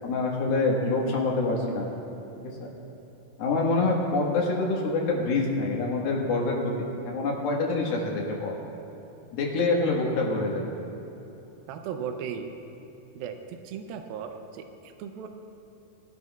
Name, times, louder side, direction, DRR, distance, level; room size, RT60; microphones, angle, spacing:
voice 1, 0.0-1.9 2.4-2.6 3.4-6.7 7.1-8.6 9.3-10.7, left 3 dB, 90° left, -2 dB, 3.5 m, -26 dB
voice 2, 11.7-12.6 13.1-15.3, right 7 dB, 90° right, 6 dB, 2.5 m, -37 dB
21.0 x 12.0 x 2.4 m, 2.9 s
omnidirectional pair, 4.1 m